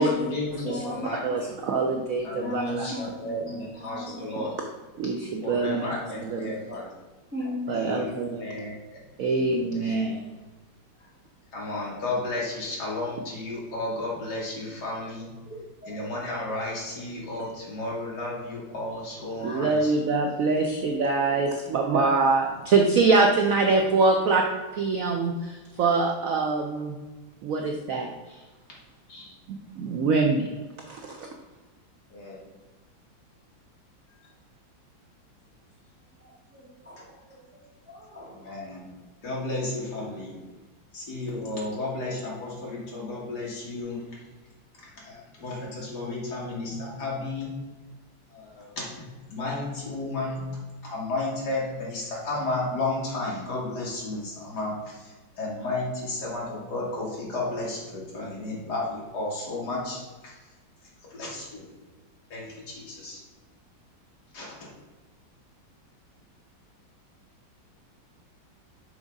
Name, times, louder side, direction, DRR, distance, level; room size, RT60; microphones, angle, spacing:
voice 1, 0.0-1.2 2.2-4.5 5.4-6.9 7.8-8.1 8.4-9.0 9.3-10.1 11.5-15.3 15.9-19.9 22.5-22.6 23.6-23.7 29.1-29.3 32.1-32.4 38.3-38.9 39.2-40.4 40.9-44.0 45.0-47.5 48.3-49.0 49.3-50.4 50.8-60.3 61.1-61.7 62.3-63.2 64.3-64.5, left 2 dB, 55° left, -4 dB, 2.3 m, -33 dB
voice 2, 0.7-1.1 1.4-1.5 2.4-4.7 5.6-5.8 6.7-6.8 7.3-8.0 11.0-11.1 15.5-16.0 19.4-19.7 25.8-26.1 36.2-38.5, left 1 dB, 15° right, -3 dB, 0.4 m, -38 dB
voice 3, 1.2-2.9 5.0-5.9 6.2-6.5 7.7-8.4 9.2-10.2 19.4-24.5 24.7-27.0 27.4-28.4 29.5-30.5 30.9-31.3, right 3 dB, 75° right, 3 dB, 0.7 m, -24 dB
6.2 x 3.6 x 5.1 m, 1.2 s
omnidirectional pair, 2.1 m